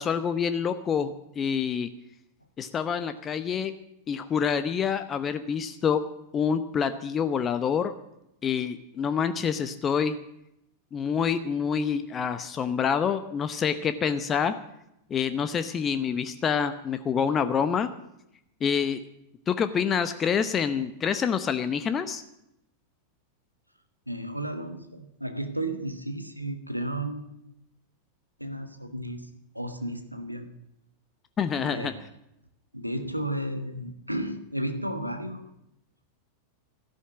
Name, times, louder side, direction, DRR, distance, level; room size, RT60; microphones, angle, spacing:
voice 1, 0.0-1.9 2.6-3.7 4.1-6.0 6.3-7.9 8.4-10.1 10.9-14.5 15.1-17.9 18.6-19.0 19.5-22.2 31.4-31.9, left 7 dB, 25° left, 11 dB, 0.8 m, -27 dB
voice 2, 24.1-27.3 28.4-30.5 31.5-32.0 32.7-35.5, right 1 dB, 90° right, 7 dB, 1.4 m, -33 dB
13.5 x 11.5 x 7.5 m, 0.81 s
figure-of-eight pair, 90°, 0 cm